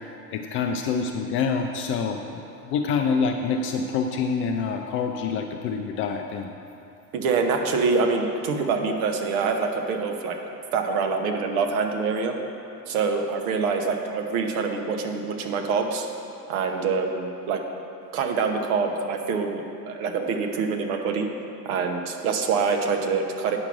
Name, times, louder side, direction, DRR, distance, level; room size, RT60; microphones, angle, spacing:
voice 1, 0.3-6.5, left 5 dB, 30° left, 4 dB, 0.3 m, -26 dB
voice 2, 7.1-10.4 10.7-12.4 12.9-16.1 16.5-17.6 18.1-19.6 19.9-21.3 21.6-23.6, right 4 dB, 60° right, 4 dB, 1.1 m, -25 dB
8.9 x 5.9 x 5.9 m, 3.0 s
figure-of-eight pair, 75°, 49 cm